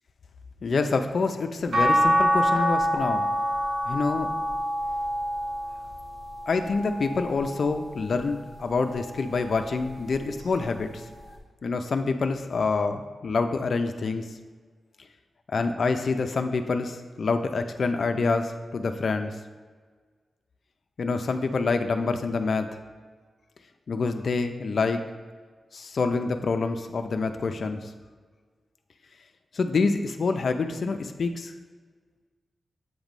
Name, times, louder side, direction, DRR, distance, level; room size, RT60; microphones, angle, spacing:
voice 1, 0.6-3.3 3.8-4.3 6.5-11.0 11.6-14.3 15.5-19.3 21.0-22.7 23.9-25.0 25.7-27.9 29.5-31.5, left 4 dB, 55° left, 6 dB, 0.4 m, -27 dB
sound 1, 1.7-8.0 8.6-9.9 11.4-11.5, equal, 85° right, 1.4 m, -27 dB
8.0 x 3.0 x 5.2 m, 1.5 s
wide cardioid pair, 140°, 0 cm